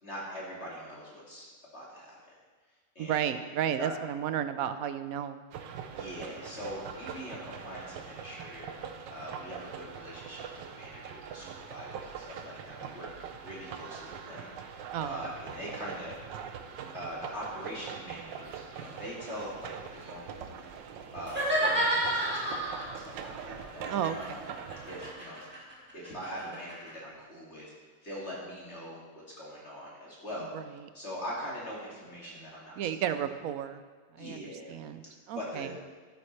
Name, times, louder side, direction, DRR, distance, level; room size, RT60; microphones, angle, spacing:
voice 1, 0.0-1.5 1.7-2.3 2.9-3.3 3.7-3.9 5.9-8.7 9.1-13.1 13.4-16.2 16.9-20.5 21.1-24.4 24.9-25.5 25.9-27.6 28.0-29.0 29.4-30.5 30.9-32.8 33.0-33.1 34.2-34.7 35.3-35.7, equal, 35° left, -6 dB, 2.7 m, -42 dB
voice 2, 3.0-5.4 14.9-15.2 23.9-24.4 30.5-30.6 32.8-33.8 34.1-35.7, right 9 dB, 70° right, 11 dB, 0.9 m, -33 dB
sound 1, 5.5-25.1, right 7 dB, 85° right, 1.5 m, -43 dB
sound 2, 21.2-23.0 23.9-26.9, right 1 dB, 5° right, 2.5 m, -30 dB
13.0 x 11.5 x 3.3 m, 1.4 s
omnidirectional pair, 1.9 m